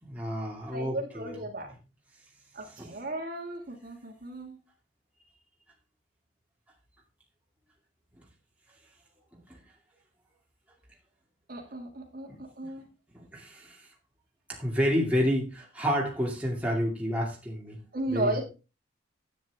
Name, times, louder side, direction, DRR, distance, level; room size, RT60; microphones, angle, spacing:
voice 1, 0.0-1.4 2.8-3.0 9.3-9.4 12.3-12.4 13.1-13.8 14.5-17.8 18.1-18.4, equal, 5° right, 2.4 m, -30 dB
voice 2, 0.7-1.7 2.6-4.6 11.5-12.8 17.9-18.4, right 1 dB, 45° right, 2.0 m, -35 dB
10.5 x 9.1 x 3.6 m
head